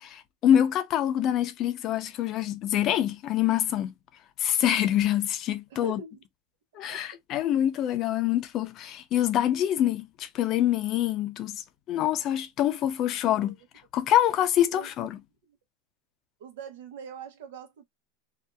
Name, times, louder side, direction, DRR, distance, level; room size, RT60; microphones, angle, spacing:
voice 1, 0.0-3.9 4.4-6.0 6.7-13.5 13.9-15.2, left 11 dB, 40° left, 0.5 m, -25 dB
voice 2, 5.7-6.2 6.9-7.0 13.2-13.5 14.7-14.9 16.4-17.8, right 6 dB, 80° right, 0.9 m, -42 dB
2.7 x 2.4 x 2.2 m
supercardioid pair, 135°, 0 cm